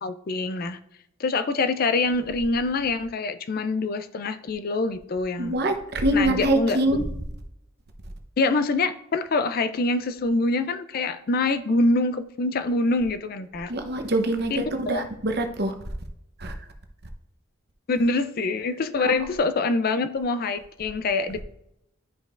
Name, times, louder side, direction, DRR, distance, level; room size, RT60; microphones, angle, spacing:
voice 1, 0.0-0.8 1.2-5.6 6.1-7.0 8.4-13.7 14.5-15.0 17.9-21.4, left 3 dB, 45° left, 12 dB, 0.4 m, -25 dB
voice 2, 5.4-7.0 13.7-15.7 16.4-16.5 19.0-19.2, right 1 dB, 50° right, 5 dB, 0.9 m, -24 dB
11.5 x 5.2 x 2.5 m, 0.79 s
head